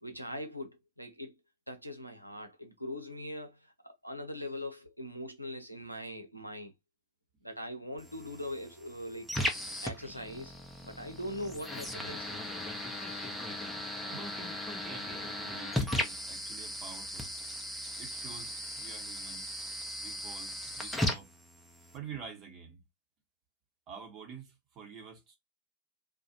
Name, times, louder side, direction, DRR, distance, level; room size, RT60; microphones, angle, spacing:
voice 1, 0.0-1.3 1.7-6.7 7.4-9.3 9.8-10.5 10.8-12.4, left 1 dB, 90° left, 0.6 m, -41 dB
sound 1, 8.0-22.0, left 1 dB, 5° left, 0.6 m, -37 dB
voice 2, 14.0-17.3 18.0-19.5 20.0-21.3 21.9-22.8 23.9-25.4, right 6 dB, 35° right, 1.0 m, -48 dB
2.3 x 2.1 x 2.8 m
figure-of-eight pair, 90°, 0 cm